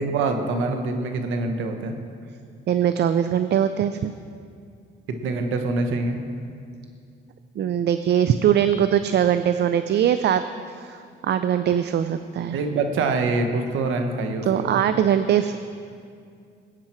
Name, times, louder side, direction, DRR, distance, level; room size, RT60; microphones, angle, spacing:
voice 1, 0.0-1.9 5.2-6.2 12.5-14.8, right 3 dB, 85° right, 5 dB, 1.3 m, -25 dB
voice 2, 2.7-4.1 7.6-10.4 10.7-12.6 14.5-15.6, right 9 dB, 60° right, 10 dB, 0.5 m, -21 dB
20.5 x 9.0 x 4.5 m, 2.3 s
cardioid pair, 90°, 20 cm